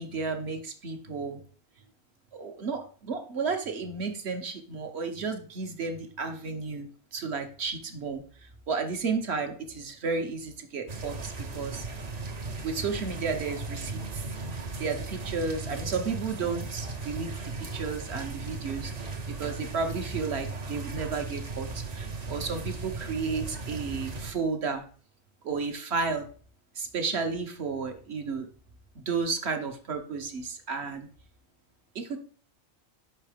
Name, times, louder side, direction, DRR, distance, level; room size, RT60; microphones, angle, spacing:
voice 1, 0.0-1.4 2.3-8.2 8.7-11.9 12.6-14.2 14.8-17.3 17.6-24.8 25.4-26.3 26.8-28.5 28.9-31.1 31.9-32.2, right 4 dB, 55° right, 5 dB, 1.1 m, -32 dB
sound 1, 10.9-24.3, right 3 dB, 40° right, 0.7 m, -37 dB
5.5 x 4.5 x 4.9 m, 0.43 s
omnidirectional pair, 1.4 m